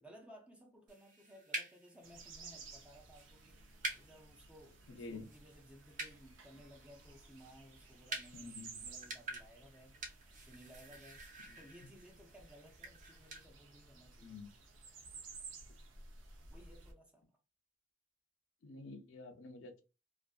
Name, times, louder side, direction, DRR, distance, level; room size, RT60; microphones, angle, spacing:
voice 1, 0.0-10.0 10.4-11.2 11.6-14.4 16.5-17.2, equal, 5° right, 0.5 m, -59 dB
sound 1, 0.9-13.4, right 2 dB, 40° right, 0.7 m, -49 dB
sound 2, 2.0-16.9, right 4 dB, 85° right, 0.6 m, -55 dB
voice 2, 4.9-5.3 8.3-8.8 11.5-11.6 14.2-14.5 18.6-19.8, left 3 dB, 85° left, 0.5 m, -49 dB
2.5 x 2.5 x 2.3 m
head